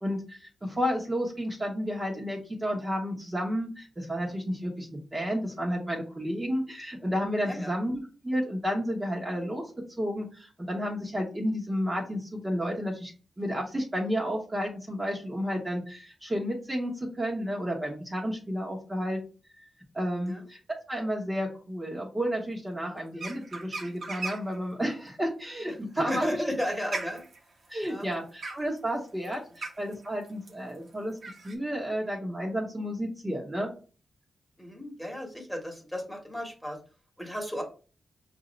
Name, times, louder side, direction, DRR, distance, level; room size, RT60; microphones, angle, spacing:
voice 1, 0.0-9.6 10.0-13.1 13.4-19.2 19.9-20.6 20.9-26.4 27.7-31.2 31.4-33.7, equal, 20° right, -2 dB, 1.3 m, -31 dB
sound 1, 23.1-24.6 25.9-31.5, right 3 dB, 60° right, 1.0 m, -39 dB
voice 2, 26.1-27.2 27.9-28.1 34.6-36.8 37.2-37.6, equal, 10° left, 1 dB, 1.6 m, -33 dB
5.4 x 2.6 x 3.2 m, 0.37 s
cardioid pair, 65°, 0 cm